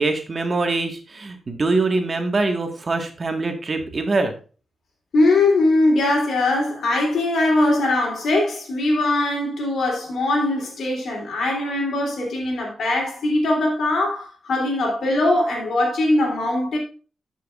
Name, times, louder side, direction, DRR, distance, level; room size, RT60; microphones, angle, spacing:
voice 1, 0.0-4.3, right 3 dB, 45° right, 1.6 m, -23 dB
voice 2, 5.1-16.8, left 2 dB, 75° left, 3.1 m, -21 dB
11.5 x 6.1 x 2.5 m
supercardioid pair, 50°, 0 cm